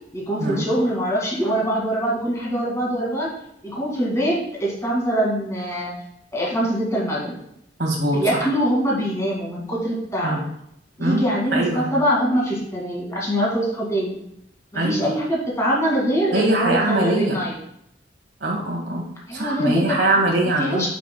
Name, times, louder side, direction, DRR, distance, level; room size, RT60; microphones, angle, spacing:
voice 1, 0.1-3.3 3.6-5.9 6.3-7.4 8.0-10.4 11.0-14.2 14.7-17.6 19.3-20.0 20.6-20.9, equal, 15° left, -4 dB, 2.1 m, -23 dB
voice 2, 7.8-8.4 10.2-10.4 11.0-11.2 11.5-11.9 14.7-15.1 16.3-17.3 18.4-19.0 19.3-20.9, right 1 dB, 70° right, 0 dB, 1.9 m, -22 dB
9.6 x 5.9 x 2.2 m, 0.77 s
head